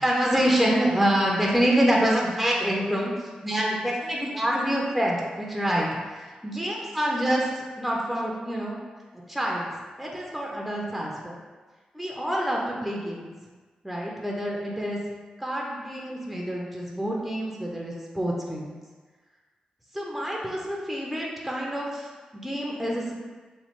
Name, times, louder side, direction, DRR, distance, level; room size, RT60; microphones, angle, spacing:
voice 1, 0.0-3.1 3.4-8.8 9.3-9.7 10.0-11.4 11.9-13.3 13.8-15.0 15.4-18.7 19.9-22.1 22.4-23.1, equal, ahead, -3 dB, 0.6 m, -26 dB
3.1 x 2.2 x 3.0 m, 1.4 s
supercardioid pair, 45°, 3 cm